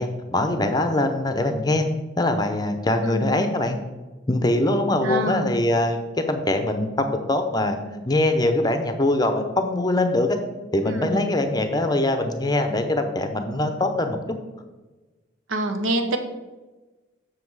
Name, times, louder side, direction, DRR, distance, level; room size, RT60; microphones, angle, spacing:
voice 1, 0.0-1.9 2.2-3.8 4.3-6.0 6.3-7.8 8.0-10.4 10.7-14.2, left 1 dB, 20° left, 7 dB, 0.6 m, -22 dB
voice 2, 3.0-3.4 5.0-5.6 10.9-11.2 15.5-16.2, right 1 dB, 80° right, 6 dB, 1.0 m, -26 dB
7.5 x 6.4 x 4.7 m, 1.2 s
head